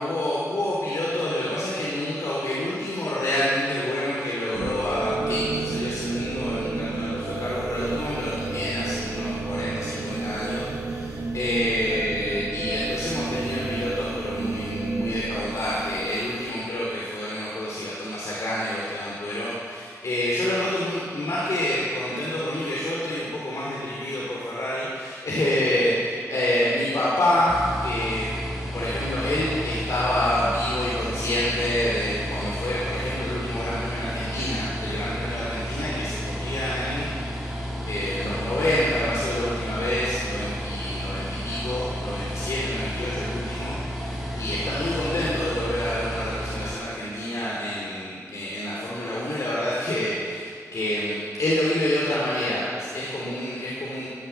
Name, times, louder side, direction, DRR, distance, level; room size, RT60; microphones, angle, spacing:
voice 1, 0.0-27.5 27.8-28.3 28.7-54.1, left 1 dB, 70° left, -6 dB, 3.4 m, -27 dB
sound 1, 4.5-16.5, right 3 dB, 75° right, 1.6 m, -31 dB
sound 2, 27.5-46.8, equal, 5° right, 4.8 m, -32 dB
15.5 x 10.5 x 7.3 m, 2.1 s
wide cardioid pair, 100°, 6 cm